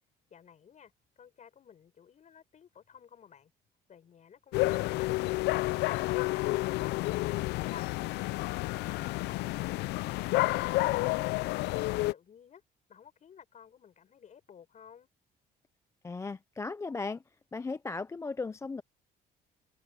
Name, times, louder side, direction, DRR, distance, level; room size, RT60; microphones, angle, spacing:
voice 1, 0.3-0.9 1.2-3.5 3.9-7.8 8.4-9.9 10.2-12.6 12.9-15.1, left 8 dB, 45° left, 7.4 m, -55 dB
sound 1, 4.5-12.1, left 20 dB, 80° left, 0.4 m, -30 dB
voice 2, 16.0-17.2 17.5-18.8, left 3 dB, 15° left, 0.4 m, -36 dB
cardioid pair, 110°, 17 cm